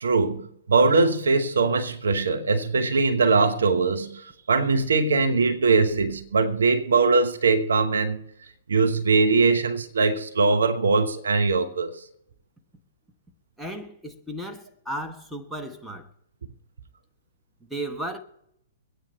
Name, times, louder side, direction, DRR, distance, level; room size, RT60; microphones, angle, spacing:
voice 1, 0.0-8.2 8.7-12.0, right 4 dB, 75° right, 1.2 m, -21 dB
voice 2, 13.6-16.1 17.7-18.2, right 1 dB, 5° right, 1.4 m, -34 dB
24.0 x 9.1 x 3.3 m
figure-of-eight pair, 115°, 0 cm